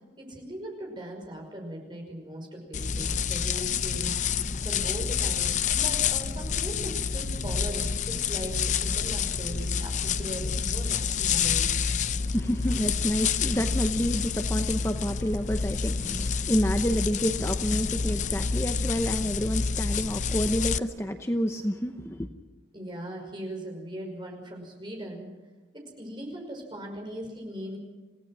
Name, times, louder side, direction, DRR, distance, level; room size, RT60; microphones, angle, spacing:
voice 1, 0.2-4.2 4.6-11.7 22.7-25.3 25.7-27.8, right 1 dB, 25° right, 1 dB, 5.6 m, -39 dB
sound 1, 2.7-20.8, left 6 dB, 45° left, 0.6 m, -28 dB
voice 2, 12.3-22.3, equal, 15° left, 6 dB, 0.9 m, -29 dB
27.5 x 17.0 x 6.1 m, 1.2 s
head